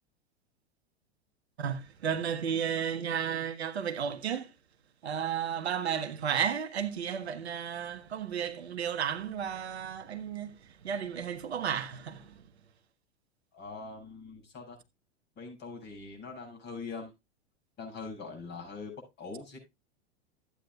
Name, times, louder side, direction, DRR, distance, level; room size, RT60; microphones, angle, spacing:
voice 1, 1.6-4.5 5.0-10.6 10.8-12.4, right 8 dB, 65° right, 1.5 m, -33 dB
voice 2, 13.5-14.8 15.4-17.1 17.8-19.6, left 4 dB, 30° left, 7.2 m, -43 dB
14.0 x 9.8 x 2.4 m
figure-of-eight pair, 95°, 34 cm